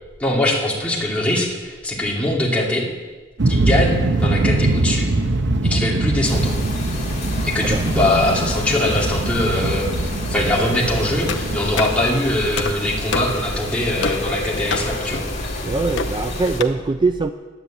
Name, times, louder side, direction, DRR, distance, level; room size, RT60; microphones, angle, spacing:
voice 1, 0.2-2.8 3.5-5.1 5.6-6.5 7.5-9.9 10.3-15.2, left 1 dB, 5° left, -4 dB, 2.6 m, -22 dB
sound 1, 3.4-12.8, right 2 dB, 60° right, 0.8 m, -22 dB
sound 2, 6.2-16.6, left 1 dB, 35° left, 2.5 m, -30 dB
voice 2, 7.6-8.0 15.6-17.3, right 3 dB, 25° right, 8 dB, 0.4 m, -22 dB
sound 3, 11.3-16.6, left 4 dB, 65° left, 0.9 m, -29 dB
10.5 x 9.5 x 8.4 m, 1.3 s
head